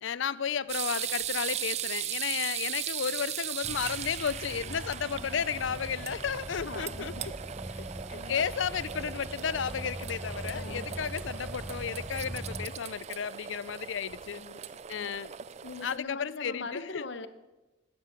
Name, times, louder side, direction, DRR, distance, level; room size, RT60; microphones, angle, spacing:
voice 1, 0.0-7.1 8.1-14.4 14.9-15.3 15.8-17.1, left 7 dB, 85° left, 0.5 m, -33 dB
sound 1, 0.7-16.0, right 10 dB, 35° right, 0.3 m, -38 dB
sound 2, 3.6-12.7, right 1 dB, 5° right, 0.7 m, -42 dB
voice 2, 4.7-5.3 5.7-5.8 6.1-6.2 6.6-7.2 7.7-8.5 10.4-11.0 14.3-14.6 15.0-15.2 15.6-17.3, left 3 dB, 65° left, 0.9 m, -43 dB
12.5 x 10.5 x 7.3 m
head